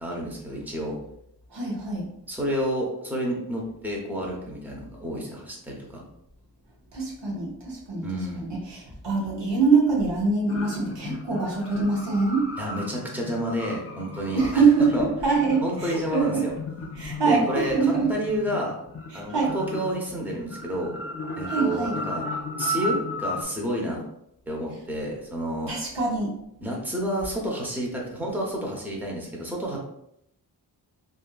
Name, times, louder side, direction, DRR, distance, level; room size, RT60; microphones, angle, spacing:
voice 1, 0.0-1.0 2.3-6.0 8.0-8.5 12.6-14.6 14.9-15.1 15.6-16.5 17.3-18.8 19.1-20.9 21.3-22.3 22.6-24.0 24.5-25.7 26.6-29.8, equal, 5° right, -2 dB, 0.7 m, -30 dB
voice 2, 1.5-2.1 6.9-8.1 8.4-12.5 14.3-16.4 17.0-18.1 19.1-19.5 21.5-22.0 25.7-26.3, right 4 dB, 80° right, -3 dB, 0.8 m, -24 dB
sound 1, 10.5-23.4, left 2 dB, 35° left, 0.4 m, -35 dB
2.7 x 2.5 x 2.2 m, 0.77 s
wide cardioid pair, 45°, 42 cm